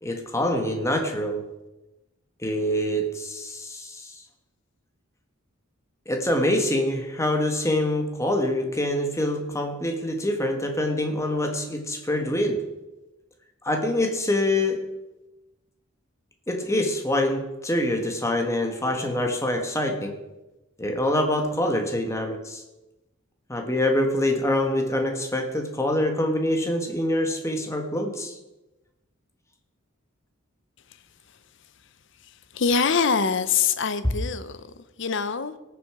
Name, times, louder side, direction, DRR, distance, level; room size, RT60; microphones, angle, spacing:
voice 1, 0.0-1.4 2.4-4.2 6.1-12.6 13.6-14.8 16.5-20.1 20.8-22.6 23.5-28.3, left 1 dB, 15° left, 4 dB, 1.5 m, -25 dB
voice 2, 32.5-35.5, left 5 dB, 60° left, 12 dB, 0.7 m, -24 dB
18.5 x 7.0 x 4.8 m, 1.0 s
head